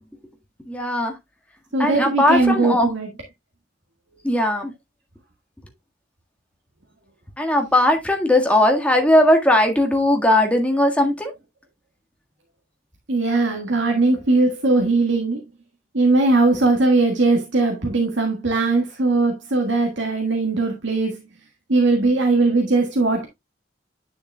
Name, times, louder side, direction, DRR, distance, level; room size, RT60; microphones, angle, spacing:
voice 1, 0.7-1.1 1.8-2.9 4.2-4.7 7.4-11.3, left 1 dB, 5° left, 1.6 m, -18 dB
voice 2, 1.7-3.1 13.1-15.4 15.9-21.2 21.7-23.3, right 3 dB, 80° right, 1.7 m, -19 dB
9.8 x 6.7 x 2.3 m
head